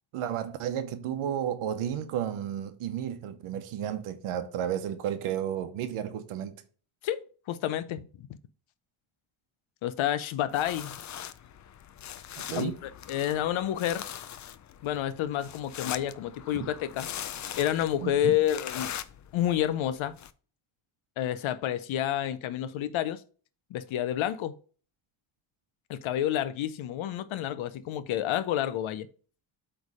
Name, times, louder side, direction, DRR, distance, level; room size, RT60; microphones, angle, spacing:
voice 1, 0.1-6.6 12.4-12.8 16.5-16.8 18.0-18.4, right 10 dB, 85° right, 0.9 m, -32 dB
voice 2, 7.0-8.1 9.8-11.0 12.6-14.1 14.8-17.1 17.5-18.9 19.3-20.2 21.2-23.2 23.7-24.5 25.9-29.1, left 11 dB, 70° left, 0.7 m, -29 dB
sound 1, 10.5-20.3, left 10 dB, 40° left, 0.4 m, -42 dB
8.1 x 3.4 x 4.8 m
cardioid pair, 150°, 49 cm